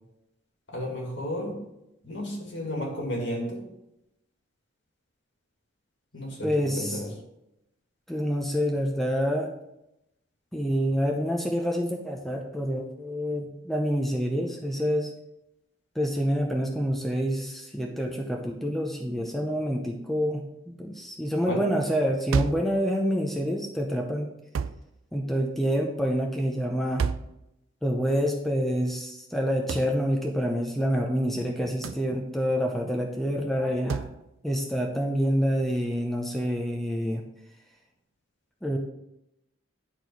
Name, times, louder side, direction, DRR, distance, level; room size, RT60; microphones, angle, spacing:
voice 1, 0.7-1.6 2.0-3.6 6.1-7.1 21.4-21.6, equal, 60° left, 0 dB, 2.2 m, -32 dB
voice 2, 6.4-7.0 8.1-9.5 10.5-15.1 16.0-24.3 25.1-27.1 27.8-34.1 34.4-37.2 38.6-38.8, equal, ahead, 1 dB, 0.6 m, -27 dB
sound 1, 22.3-22.7 24.5-24.9 27.0-27.4 29.7-29.9 31.8-32.1 33.9-34.2, right 6 dB, 75° right, 0.4 m, -29 dB
10.0 x 4.4 x 4.6 m, 0.87 s
head